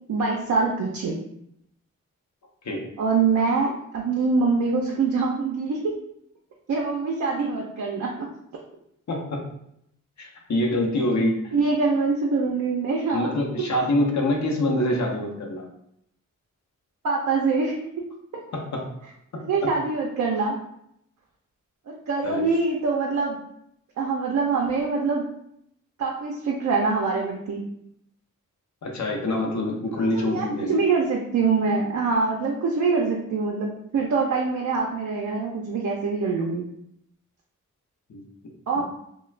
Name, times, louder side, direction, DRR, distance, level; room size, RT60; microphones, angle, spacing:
voice 1, 0.1-1.2 3.0-6.0 6.7-8.3 11.5-13.3 17.0-17.9 18.3-18.4 19.3-20.6 21.9-23.4 24.0-25.3 26.0-27.6 30.0-36.7 38.7-38.8, right 4 dB, 65° right, -1 dB, 0.5 m, -24 dB
voice 2, 9.1-9.4 10.2-11.5 13.1-15.6 18.5-18.9 19.3-19.7 22.2-22.4 28.8-30.8 38.1-38.2 38.7-38.8, left 1 dB, 60° left, 0 dB, 0.7 m, -25 dB
2.3 x 2.2 x 3.1 m, 0.75 s
cardioid pair, 50°, 32 cm